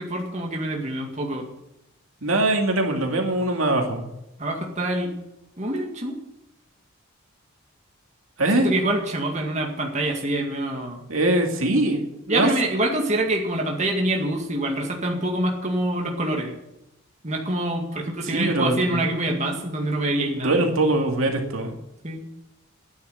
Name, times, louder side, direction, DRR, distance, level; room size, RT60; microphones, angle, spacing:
voice 1, 0.0-1.5 4.4-5.2 5.6-6.2 8.6-11.0 12.3-16.6 17.2-20.6 22.0-22.3, right 1 dB, 35° right, 0 dB, 2.1 m, -26 dB
voice 2, 2.2-4.1 8.4-8.7 11.1-12.5 18.3-19.0 19.9-21.7, right 2 dB, 75° right, 3 dB, 2.4 m, -22 dB
11.5 x 9.8 x 7.8 m, 0.90 s
head